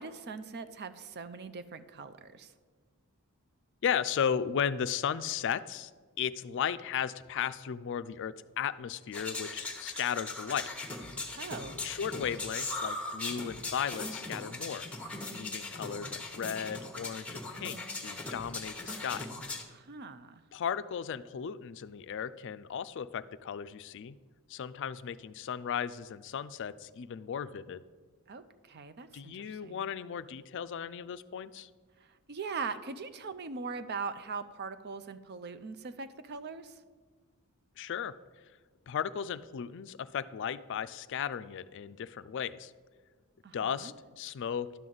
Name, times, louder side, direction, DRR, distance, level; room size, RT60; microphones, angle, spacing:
voice 1, 0.0-2.5 11.3-11.8 19.7-20.4 28.3-29.8 32.3-36.7 43.4-43.9, right 4 dB, 50° right, 11 dB, 0.5 m, -41 dB
voice 2, 3.8-5.9 6.2-10.7 11.8-14.9 15.3-19.3 20.5-24.2 24.5-27.8 29.1-31.7 37.8-38.1 38.9-42.7 43.5-44.9, left 8 dB, 55° left, 14 dB, 0.4 m, -35 dB
sound 1, 9.1-19.6, left 2 dB, 5° left, 1.0 m, -39 dB
11.5 x 4.0 x 7.6 m, 1.4 s
head